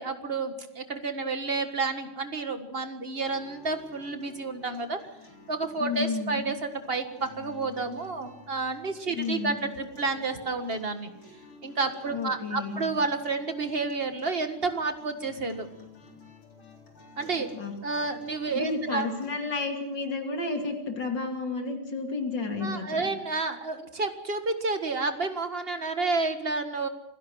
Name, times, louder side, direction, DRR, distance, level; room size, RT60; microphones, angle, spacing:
voice 1, 0.0-5.0 5.5-11.1 11.6-15.7 17.2-17.5 17.8-19.1 22.6-26.9, right 3 dB, 30° right, 7 dB, 1.8 m, -30 dB
sound 1, 3.3-19.3, left 3 dB, 80° left, 4.6 m, -51 dB
voice 2, 5.8-6.4 9.1-9.6 12.1-12.9 17.5-17.7 18.5-23.1, left 3 dB, 60° left, 3 dB, 3.5 m, -31 dB
27.0 x 16.5 x 6.3 m, 0.87 s
omnidirectional pair, 2.2 m